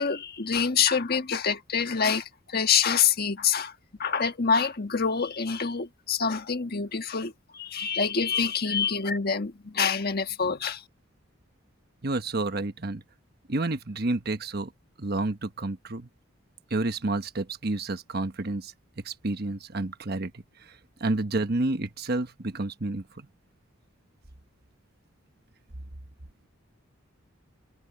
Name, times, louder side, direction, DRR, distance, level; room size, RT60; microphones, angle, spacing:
voice 1, 0.0-3.7 4.0-10.8, left 6 dB, 50° left, 1.5 m, -26 dB
voice 2, 12.0-13.0 13.5-14.7 15.0-16.1 16.7-23.3, right 2 dB, 50° right, 1.2 m, -30 dB
head